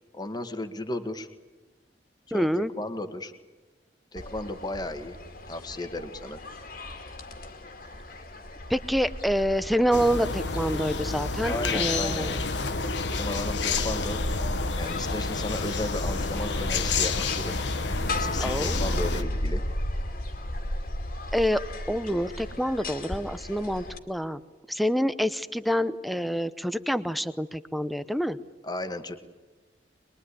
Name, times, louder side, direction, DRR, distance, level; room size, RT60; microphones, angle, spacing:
voice 1, 0.1-1.3 2.3-3.3 4.1-5.2 5.5-6.4 11.4-12.3 13.1-14.2 14.8-17.6 18.1-19.6 28.6-29.1, left 1 dB, 25° left, 8 dB, 1.7 m, -34 dB
voice 2, 2.3-2.7 8.7-12.4 18.4-18.9 21.3-21.6 21.9-24.4 24.7-28.4, equal, ahead, 13 dB, 0.8 m, -27 dB
sound 1, 4.2-24.0, left 1 dB, 55° left, 2.5 m, -35 dB
sound 2, 9.9-19.2, left 4 dB, 85° left, 1.4 m, -29 dB
23.0 x 22.0 x 9.9 m, 1.2 s
head